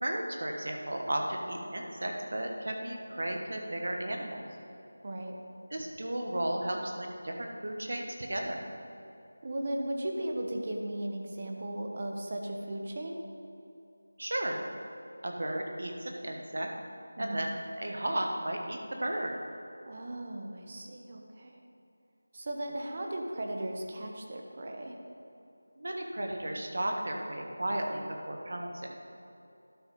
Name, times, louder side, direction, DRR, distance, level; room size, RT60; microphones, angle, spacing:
voice 1, 0.0-4.5 5.7-8.6 14.2-14.6 15.2-16.7 17.2-17.5 17.8-19.3 25.8-28.9, right 1 dB, 60° right, 2 dB, 1.2 m, -34 dB
voice 2, 5.0-5.3 9.4-13.2 17.2-17.5 19.8-21.6 22.3-25.0, right 1 dB, 35° right, 2 dB, 0.9 m, -36 dB
12.0 x 4.9 x 5.3 m, 2.7 s
figure-of-eight pair, 175°, 0 cm